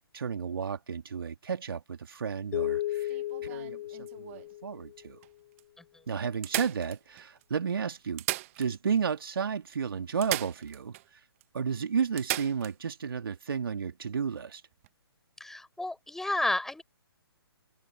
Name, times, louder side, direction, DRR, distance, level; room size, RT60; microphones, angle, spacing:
voice 1, 0.1-5.2 6.1-8.2 8.6-11.0 11.5-14.6, right 6 dB, 60° right, 2.7 m, -32 dB
sound 1, 2.5-5.1, left 14 dB, 40° left, 4.4 m, -34 dB
sound 2, 2.9-4.5 5.2-5.3 5.6-5.7 6.4-7.4 8.0-9.0 9.3-9.4 10.2-11.1 11.4-11.5 12.2-12.7 14.7-14.9, right 18 dB, 30° right, 1.3 m, -36 dB
voice 2, 15.4-16.8, left 2 dB, 5° left, 4.9 m, -32 dB
figure-of-eight pair, 130°, 13 cm